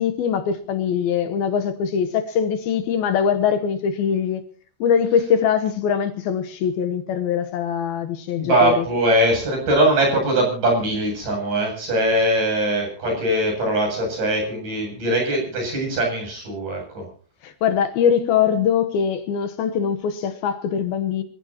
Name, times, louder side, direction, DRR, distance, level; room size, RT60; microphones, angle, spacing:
voice 1, 0.0-4.4 4.8-8.8 17.4-21.2, left 7 dB, 70° left, 2.7 m, -22 dB
voice 2, 8.4-17.1, right 1 dB, 50° right, 9.3 m, -21 dB
27.0 x 15.0 x 2.9 m
omnidirectional pair, 4.8 m